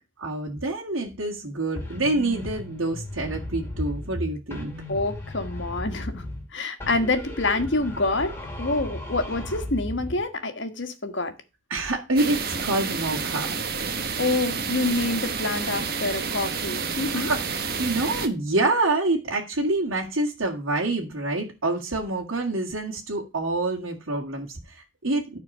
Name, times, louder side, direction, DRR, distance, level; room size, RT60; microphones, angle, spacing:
voice 1, 0.2-4.7 11.7-13.5 17.1-25.4, right 2 dB, 85° right, 2.0 m, -27 dB
sound 1, 1.8-4.2 4.5-6.5 6.8-10.2, left 1 dB, 10° left, 2.3 m, -36 dB
voice 2, 4.9-11.3 13.9-17.3, left 2 dB, 65° left, 1.5 m, -27 dB
sound 2, 12.2-18.3, right 5 dB, 50° right, 1.1 m, -29 dB
12.5 x 4.4 x 5.4 m
head